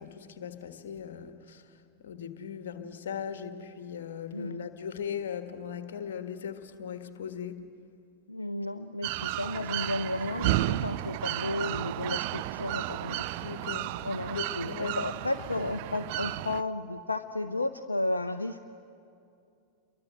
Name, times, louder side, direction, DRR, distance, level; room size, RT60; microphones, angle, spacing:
voice 1, 0.0-1.7 2.0-7.6 13.4-13.9 14.3-15.0, left 8 dB, 60° left, 9 dB, 1.7 m, -38 dB
voice 2, 4.3-4.7 8.3-13.2 14.0-18.6, left 2 dB, 80° left, 9 dB, 0.6 m, -33 dB
sound 1, 9.0-16.6, right 16 dB, 50° right, 0.6 m, -33 dB
29.0 x 23.5 x 7.9 m, 2.5 s
figure-of-eight pair, 90°, 0 cm